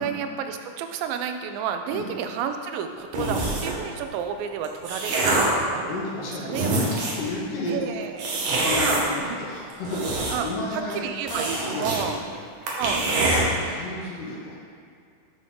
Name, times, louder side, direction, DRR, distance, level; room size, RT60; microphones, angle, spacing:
voice 1, 0.0-6.0 6.4-6.9 7.7-8.4 8.8-9.0 10.3-12.2 12.8-13.1, right 8 dB, 85° right, 6 dB, 2.3 m, -31 dB
sound 1, 3.1-3.8 4.5-5.6 6.2-6.3 6.5-7.3 8.2-9.0 9.7-10.6 10.9-11.0 11.3-12.0 12.3-12.4 12.7-13.4, right 2 dB, 65° right, 1.8 m, -25 dB
voice 2, 5.8-6.8 7.1-7.9 8.6-12.2 12.8-14.6, left 2 dB, 70° left, -6 dB, 2.7 m, -32 dB
10.5 x 3.8 x 3.7 m, 2.2 s
omnidirectional pair, 4.0 m